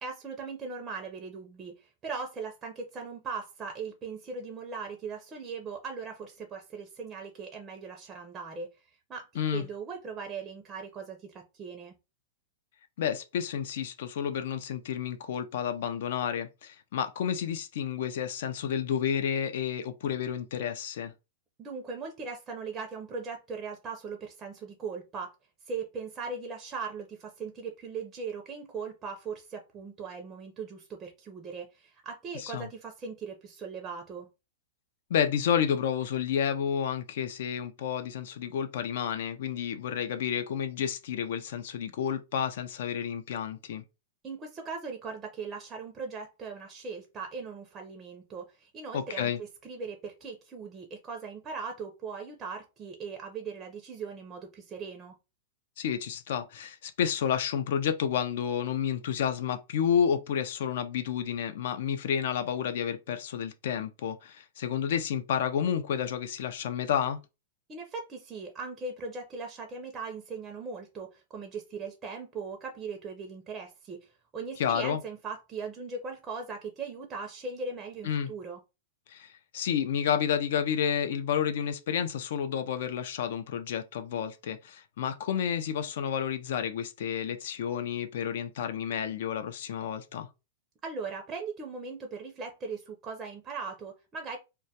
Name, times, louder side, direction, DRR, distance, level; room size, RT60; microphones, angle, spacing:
voice 1, 0.0-11.9 21.6-25.3 25.7-34.3 44.2-55.2 67.7-78.6 90.8-94.4, right 4 dB, 25° right, 0.4 m, -39 dB
voice 2, 13.0-21.1 32.3-32.7 35.1-43.8 48.9-49.4 55.8-67.2 74.6-75.0 78.0-78.3 79.1-90.3, left 8 dB, 65° left, 0.4 m, -30 dB
2.2 x 2.1 x 2.7 m
hypercardioid pair, 135°, 0 cm